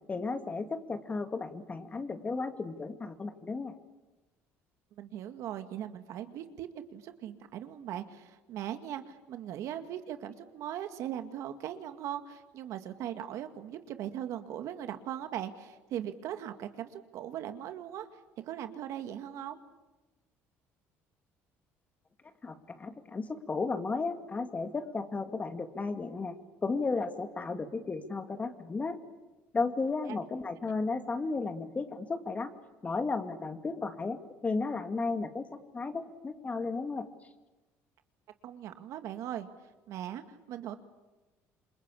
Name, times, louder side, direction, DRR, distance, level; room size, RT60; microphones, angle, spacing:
voice 1, 0.1-3.7 22.4-29.0 29.5-32.5 32.8-37.1, left 4 dB, 25° left, 8 dB, 2.3 m, -34 dB
voice 2, 5.0-19.6 38.4-39.5 39.9-40.8, right 11 dB, 70° right, 8 dB, 2.0 m, -39 dB
27.5 x 23.0 x 8.5 m, 1.1 s
cardioid pair, 100°, 6 cm